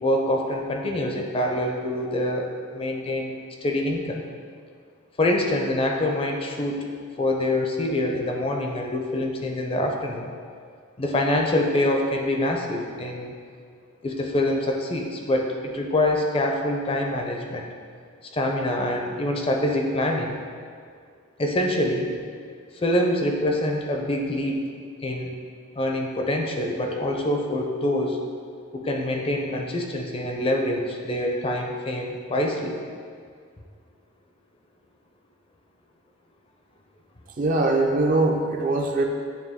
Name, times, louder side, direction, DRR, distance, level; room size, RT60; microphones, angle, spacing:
voice 1, 0.0-3.3 3.6-4.2 5.2-6.8 7.2-10.3 11.0-13.3 14.0-17.7 18.2-20.3 21.4-22.1 22.7-24.6 25.0-25.3 25.8-28.2 28.7-32.8, left 1 dB, 25° left, 1 dB, 0.5 m, -25 dB
voice 2, 37.4-39.0, right 2 dB, 40° right, 3 dB, 0.4 m, -22 dB
8.9 x 3.4 x 3.5 m, 2.1 s
head